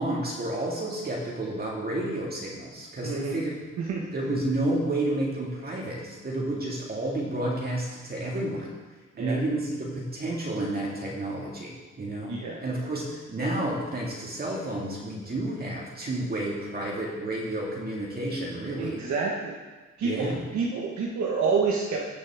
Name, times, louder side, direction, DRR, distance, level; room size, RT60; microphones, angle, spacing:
voice 1, 0.0-3.5 4.1-8.7 9.1-12.3 12.6-19.0 20.0-20.4, right 1 dB, 30° right, -3 dB, 2.2 m, -30 dB
voice 2, 3.0-3.4 3.8-4.1 9.2-9.4 12.3-12.6 18.8-19.5 20.0-22.0, right 5 dB, 65° right, -3 dB, 1.4 m, -28 dB
16.0 x 6.4 x 3.6 m, 1.3 s
cardioid pair, 90°, 30 cm